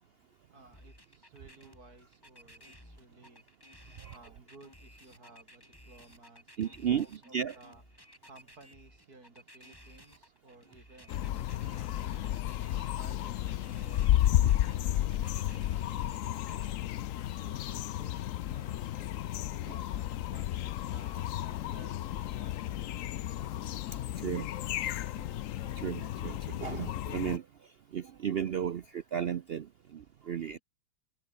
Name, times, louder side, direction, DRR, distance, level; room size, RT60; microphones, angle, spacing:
voice 1, 0.0-12.4 13.0-19.2 19.5-23.6 23.9-25.2 26.7-27.0 30.4-30.6, right 2 dB, 60° right, 6.3 m, -58 dB
sound 1, 0.7-16.7, equal, 10° left, 7.1 m, -56 dB
voice 2, 6.6-7.1 7.3-7.5 19.6-19.8 24.2-24.5 24.8-25.2 25.6-30.6, right 8 dB, 75° right, 0.5 m, -35 dB
sound 2, 11.1-27.4, left 13 dB, 65° left, 0.9 m, -32 dB
omnidirectional pair, 1.8 m